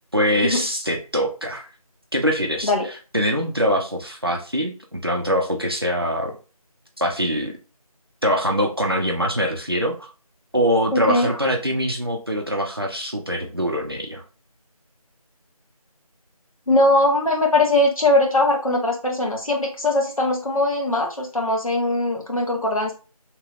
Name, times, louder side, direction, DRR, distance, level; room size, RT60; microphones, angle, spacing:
voice 1, 0.1-1.7 2.1-2.7 3.1-6.4 7.0-7.6 8.2-9.9 10.5-14.2, equal, 40° right, 2 dB, 0.6 m, -23 dB
voice 2, 10.9-11.3 16.7-22.9, left 1 dB, 60° left, 0 dB, 1.2 m, -20 dB
3.2 x 2.9 x 2.4 m, 0.34 s
figure-of-eight pair, 180°, 19 cm